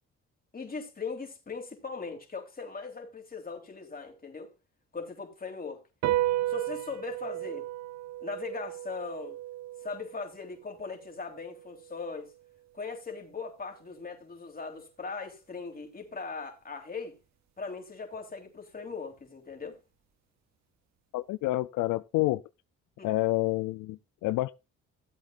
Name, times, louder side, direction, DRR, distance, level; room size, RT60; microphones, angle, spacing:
voice 1, 0.5-4.5 4.9-5.8 6.5-7.7 8.2-9.4 9.8-12.3 12.7-17.2 17.6-19.8 23.0-23.1, left 4 dB, 30° left, 3.4 m, -39 dB
sound 1, 6.0-12.7, right 15 dB, 65° right, 0.6 m, -35 dB
voice 2, 21.1-22.4 23.0-24.5, left 18 dB, 85° left, 0.5 m, -28 dB
16.5 x 8.2 x 2.5 m
cardioid pair, 90°, 30 cm